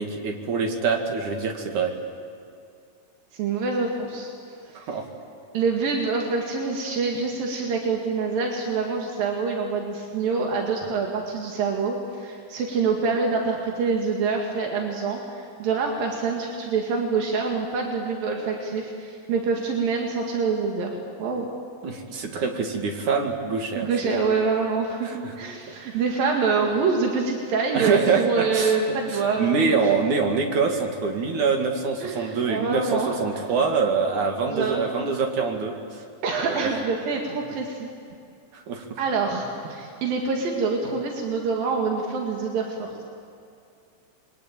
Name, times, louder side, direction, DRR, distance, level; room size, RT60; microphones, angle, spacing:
voice 1, 0.0-1.9 4.9-5.1 21.8-24.2 25.0-25.3 27.7-28.8 29.1-35.8 36.4-36.7 38.5-39.0, right 5 dB, 60° right, 3 dB, 3.6 m, -25 dB
voice 2, 3.3-4.3 4.7-4.9 5.5-20.9 21.2-21.5 23.8-29.9 32.0-33.1 34.5-34.8 36.2-37.9 39.0-43.0, right 4 dB, 85° right, 1 dB, 3.8 m, -26 dB
28.5 x 23.0 x 9.0 m, 2.4 s
omnidirectional pair, 3.9 m